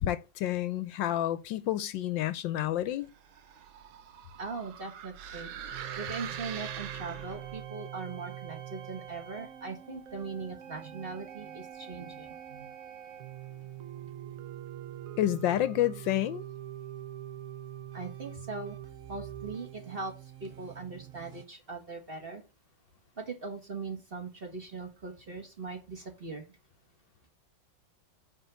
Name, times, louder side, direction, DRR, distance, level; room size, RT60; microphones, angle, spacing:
voice 1, 0.0-3.1 15.2-16.4, left 12 dB, 75° left, 1.3 m, -29 dB
sound 1, 3.2-7.6, right 8 dB, 80° right, 1.6 m, -42 dB
voice 2, 4.4-5.5 6.0-12.7 13.1-14.5 17.9-18.8 19.1-20.1 20.4-22.4 23.2-26.5, right 4 dB, 30° right, 1.5 m, -40 dB
sound 2, 5.7-21.5, right 11 dB, 60° right, 1.0 m, -44 dB
9.2 x 3.7 x 6.8 m
omnidirectional pair, 2.2 m